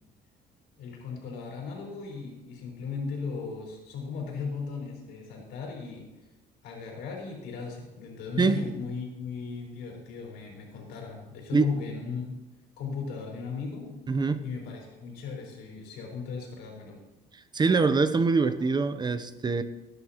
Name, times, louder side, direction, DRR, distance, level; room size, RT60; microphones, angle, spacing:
voice 1, 0.8-6.1 6.6-12.3 12.8-17.0, left 5 dB, 80° left, -1 dB, 4.7 m, -37 dB
voice 2, 8.4-8.7 11.5-11.6 14.1-14.4 17.5-19.6, right 4 dB, 25° right, 11 dB, 0.7 m, -24 dB
19.0 x 10.5 x 3.0 m, 1.0 s
cardioid pair, 110°, 17 cm